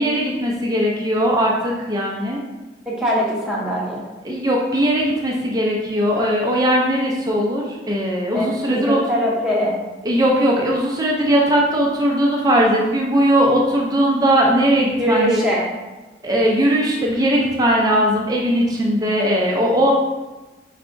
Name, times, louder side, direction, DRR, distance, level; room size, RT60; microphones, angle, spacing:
voice 1, 0.0-2.4 4.2-9.0 10.0-15.4 16.2-19.9, equal, 20° right, -2 dB, 0.5 m, -19 dB
voice 2, 2.9-4.1 8.3-9.8 15.0-15.7, equal, 5° right, -6 dB, 0.9 m, -22 dB
4.5 x 3.2 x 2.6 m, 1.1 s
head